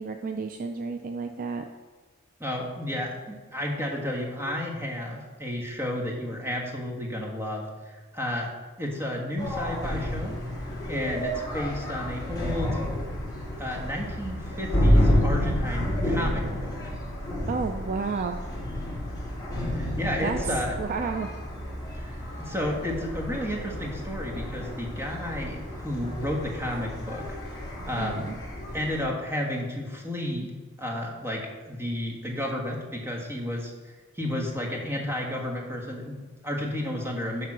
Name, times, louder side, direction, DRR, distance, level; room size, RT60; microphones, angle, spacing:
voice 1, 0.0-1.6 17.5-18.4 20.2-21.3 28.0-28.4, right 4 dB, 40° right, 6 dB, 0.4 m, -31 dB
voice 2, 2.4-8.5 8.8-10.3 10.9-12.8 13.6-16.7 19.7-20.7 21.9-27.3 27.9-28.3 28.7-30.5 30.8-37.5, left 1 dB, 10° right, 0 dB, 1.4 m, -32 dB
sound 1, 9.4-29.0, equal, 20° left, 2.3 m, -30 dB
10.5 x 3.6 x 6.0 m, 1.4 s
head